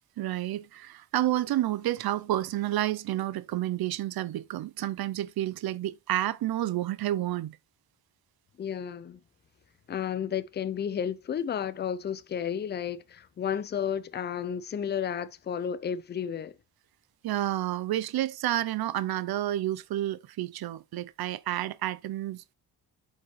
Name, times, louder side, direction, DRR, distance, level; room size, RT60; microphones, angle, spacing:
voice 1, 0.2-7.6 17.2-22.5, right 14 dB, 65° right, 0.6 m, -30 dB
voice 2, 8.6-9.2 9.9-16.6, left 8 dB, 25° left, 0.4 m, -32 dB
8.1 x 5.2 x 3.1 m
wide cardioid pair, 175°, 41 cm